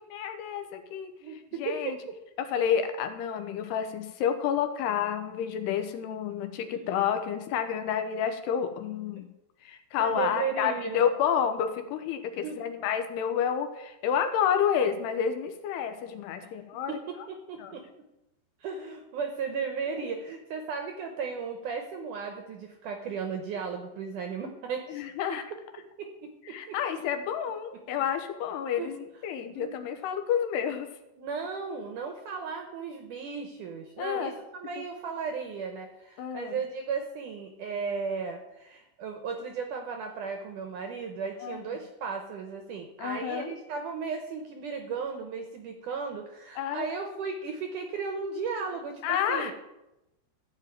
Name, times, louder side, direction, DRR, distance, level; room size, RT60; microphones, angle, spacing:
voice 1, 0.1-1.1 1.6-2.0 2.5-9.3 9.6-16.9 17.6-17.7 19.9-20.0 24.9-25.4 26.5-30.9 34.0-34.3 36.2-36.6 41.4-41.6 43.0-43.5 46.6-46.9 49.0-49.5, left 8 dB, 80° left, 7 dB, 3.1 m, -29 dB
voice 2, 1.2-2.0 6.7-6.9 9.2-9.3 10.0-11.1 12.4-12.6 16.4-16.5 16.9-17.8 18.6-25.0 25.3-25.4 25.8-26.8 28.8-28.9 29.6-29.8 31.2-49.5, right 5 dB, 70° right, 5 dB, 2.0 m, -35 dB
14.5 x 5.1 x 9.1 m, 0.93 s
omnidirectional pair, 4.8 m